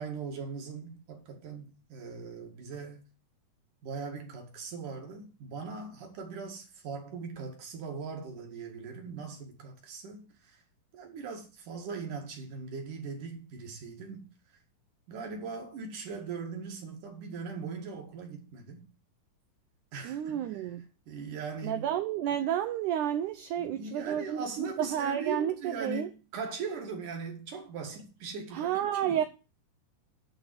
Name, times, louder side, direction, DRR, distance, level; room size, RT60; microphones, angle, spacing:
voice 1, 0.0-3.0 3.8-10.6 10.9-14.6 15.1-18.8 19.9-20.6 21.1-21.8 23.6-29.2, right 5 dB, 60° right, 3.4 m, -40 dB
voice 2, 20.0-20.8 21.6-26.1 28.5-29.2, right 10 dB, 80° right, 1.8 m, -31 dB
11.5 x 4.2 x 7.7 m
omnidirectional pair, 4.3 m